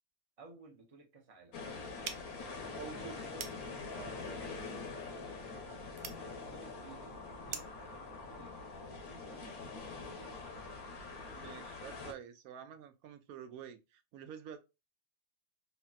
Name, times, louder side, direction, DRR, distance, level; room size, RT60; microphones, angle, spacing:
voice 1, 0.4-1.6 2.4-3.4 3.9-5.7 6.2-10.4, right 4 dB, 30° right, 0.7 m, -56 dB
sound 1, 1.5-12.1, left 4 dB, 80° left, 1.2 m, -45 dB
sound 2, 2.0-7.9, right 7 dB, 75° right, 0.5 m, -49 dB
voice 2, 2.8-3.2 11.3-14.6, right 8 dB, 90° right, 1.1 m, -48 dB
3.2 x 2.8 x 2.2 m
omnidirectional pair, 1.5 m